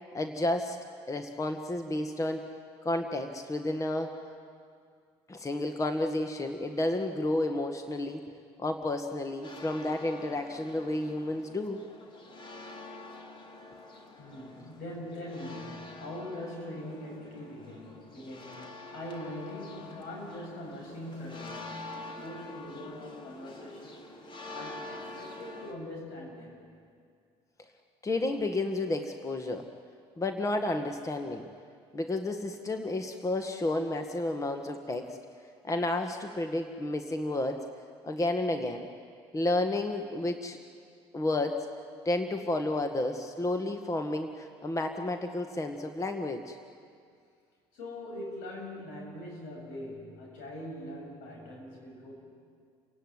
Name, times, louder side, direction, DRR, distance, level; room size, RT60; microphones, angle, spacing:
voice 1, 0.1-0.8 1.1-2.5 2.8-4.2 5.3-8.2 8.6-11.8 28.0-29.7 30.2-31.5 31.9-35.2 35.6-37.7 38.0-38.9 39.3-40.6 41.1-41.7 42.0-46.6, left 2 dB, 25° left, 6 dB, 1.7 m, -31 dB
sound 1, 9.4-25.7, left 2 dB, 40° left, 3.0 m, -46 dB
voice 2, 14.2-24.0 24.5-26.6 47.7-52.1, left 1 dB, 75° left, 0 dB, 7.8 m, -42 dB
29.5 x 17.0 x 9.6 m, 2.2 s
supercardioid pair, 75°, 13 cm